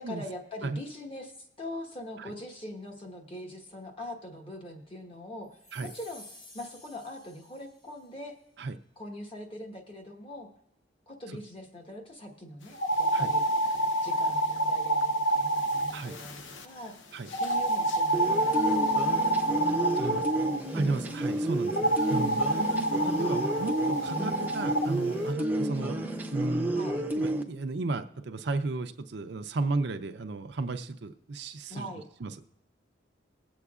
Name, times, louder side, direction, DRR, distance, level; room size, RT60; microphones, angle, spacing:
voice 1, 0.0-6.2 6.5-8.4 9.0-10.5 11.1-13.4 14.0-17.0 17.4-18.7 19.7-20.8 22.1-22.7 23.1-23.7 26.7-27.0 31.7-32.0, left 1 dB, 30° left, 2 dB, 1.3 m, -42 dB
sound 1, 5.5-8.1, left 2 dB, 45° left, 2.4 m, -52 dB
sound 2, 12.7-16.6 17.3-20.6 21.7-24.9, right 1 dB, 80° left, 0.8 m, -28 dB
sound 3, 18.1-27.4, right 1 dB, 10° right, 0.7 m, -30 dB
voice 2, 20.7-26.0 26.3-26.7 27.1-31.9 32.2-32.5, right 3 dB, 60° right, 8 dB, 0.5 m, -34 dB
21.5 x 8.0 x 2.4 m, 0.85 s
head